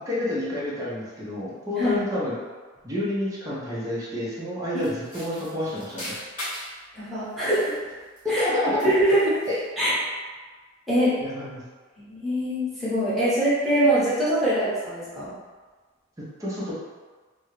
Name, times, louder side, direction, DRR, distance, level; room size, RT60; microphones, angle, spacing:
voice 1, 0.1-2.4 2.8-6.1 8.2-8.9 9.5-9.6 11.2-11.6 16.2-16.7, left 1 dB, 15° right, -8 dB, 0.6 m, -28 dB
sound 1, 4.8-6.8 7.3-8.5 8.8-9.7, left 1 dB, 40° left, 0.9 m, -39 dB
voice 2, 6.9-7.7 8.3-8.4 8.8-9.2 9.8-9.9 10.9-11.1 12.0-15.3, right 1 dB, ahead, -12 dB, 1.0 m, -23 dB
2.4 x 2.1 x 3.1 m, 1.4 s
head